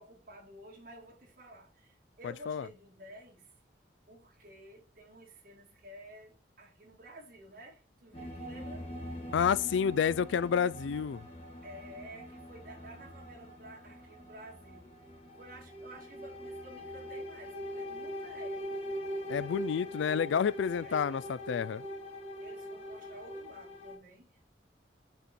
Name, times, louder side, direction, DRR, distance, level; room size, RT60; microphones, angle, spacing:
voice 1, 0.0-3.5 4.1-8.9 11.6-15.1 15.3-18.7 20.6-21.3 22.4-24.4, right 1 dB, 50° right, 2.2 m, -52 dB
sound 1, 8.1-24.0, equal, 30° left, 1.7 m, -42 dB
voice 2, 9.3-11.3 19.3-21.9, left 7 dB, 85° left, 0.3 m, -29 dB
5.5 x 4.2 x 4.5 m
head